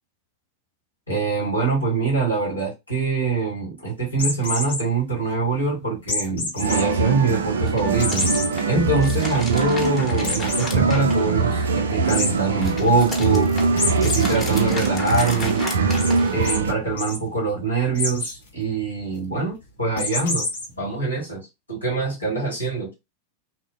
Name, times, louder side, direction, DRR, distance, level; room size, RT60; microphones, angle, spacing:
voice 1, 1.1-8.2 8.6-13.5 14.0-15.7 16.3-20.4 20.8-22.9, right 3 dB, 80° left, 1.4 m, -24 dB
sound 1, 4.1-4.8 6.1-6.8 7.2-7.3 8.0-8.5 9.0-9.1 9.4-9.5 10.2-10.7 12.1-12.3 13.8-14.2 14.6-15.2 16.0-16.1 16.4-16.6 16.9-17.2 17.9-18.3 20.0-20.6, left 3 dB, 60° left, 0.8 m, -26 dB
sound 2, 6.6-16.7, right 4 dB, 65° right, 0.3 m, -22 dB
sound 3, 7.5-11.7 12.0-16.7, left 3 dB, 20° left, 0.9 m, -35 dB
3.0 x 2.0 x 2.3 m
figure-of-eight pair, 90°, 0 cm